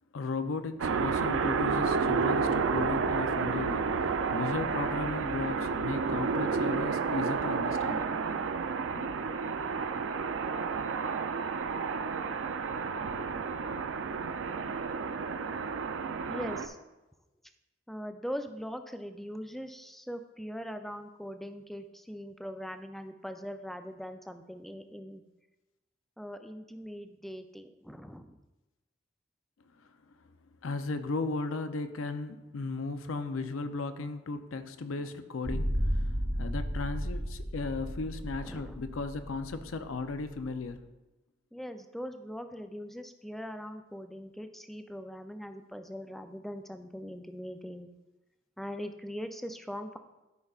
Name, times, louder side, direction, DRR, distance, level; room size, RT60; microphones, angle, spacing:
voice 1, 0.1-8.1 9.0-9.1 30.6-36.0 36.4-40.9, left 3 dB, 85° left, 9 dB, 0.6 m, -36 dB
sound 1, 0.8-16.7, right 5 dB, 70° right, 0.4 m, -31 dB
voice 2, 9.6-10.0 16.3-16.8 17.9-25.2 26.2-28.4 38.4-38.8 41.5-47.9 48.6-50.0, equal, ahead, 7 dB, 0.4 m, -41 dB
sound 2, 35.4-40.7, equal, 50° right, 1.2 m, -33 dB
12.5 x 5.4 x 2.4 m, 1.0 s
head